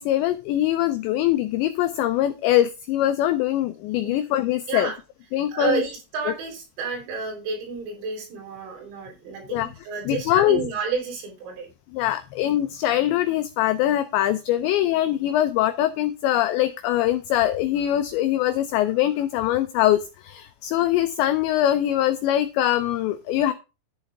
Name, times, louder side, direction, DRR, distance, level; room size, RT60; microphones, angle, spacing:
voice 1, 0.0-4.9 5.3-5.8 9.5-9.7 10.1-10.6 11.9-23.5, left 13 dB, 90° left, 10 dB, 2.5 m, -22 dB
voice 2, 5.5-11.7, right 5 dB, 85° right, 1 dB, 7.2 m, -30 dB
11.5 x 8.8 x 3.5 m, 0.29 s
omnidirectional pair, 6.0 m